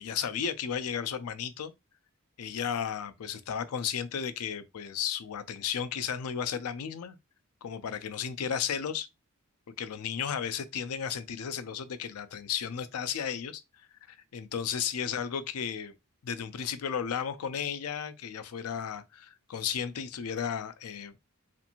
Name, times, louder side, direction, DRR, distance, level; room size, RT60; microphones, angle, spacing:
voice 1, 0.0-1.7 2.4-7.2 7.6-9.1 9.8-13.6 14.1-16.0 16.2-21.2, left 8 dB, 80° left, 0.4 m, -34 dB
2.6 x 2.5 x 2.8 m
head